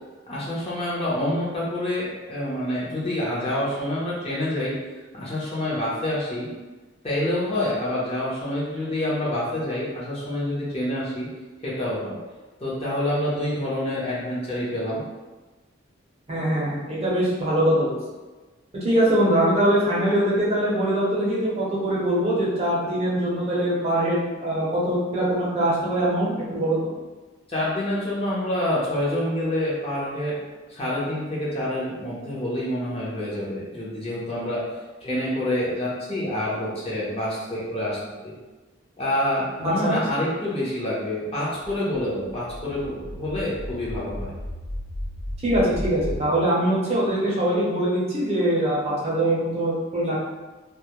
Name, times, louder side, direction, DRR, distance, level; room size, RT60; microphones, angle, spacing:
voice 1, 0.3-4.7 5.1-6.5 7.0-11.3 11.6-12.2 12.6-15.0 27.5-30.3 30.7-34.6 35.0-38.0 38.2-38.3 39.0-44.3, left 1 dB, 30° left, -7 dB, 0.7 m, -27 dB
voice 2, 16.3-18.0 18.8-26.9 39.6-40.0 45.4-50.2, right 1 dB, 35° right, -6 dB, 0.6 m, -22 dB
sound 1, 41.6-46.3, left 1 dB, 60° left, 0.4 m, -35 dB
2.2 x 2.1 x 2.9 m, 1.2 s
head